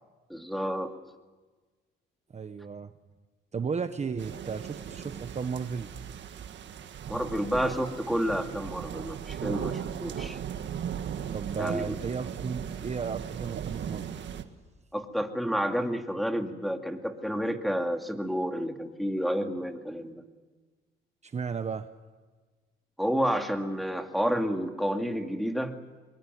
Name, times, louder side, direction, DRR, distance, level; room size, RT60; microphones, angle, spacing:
voice 1, 0.3-0.9 7.1-10.4 11.6-12.0 14.9-20.3 23.0-25.8, equal, ahead, 4 dB, 2.4 m, -30 dB
voice 2, 2.3-2.9 3.5-5.9 11.3-14.2 21.2-21.9, right 5 dB, 35° right, 9 dB, 1.1 m, -34 dB
sound 1, 4.2-14.4, right 8 dB, 65° right, 1.7 m, -37 dB
23.0 x 22.5 x 9.4 m, 1.3 s
cardioid pair, 90°, 20 cm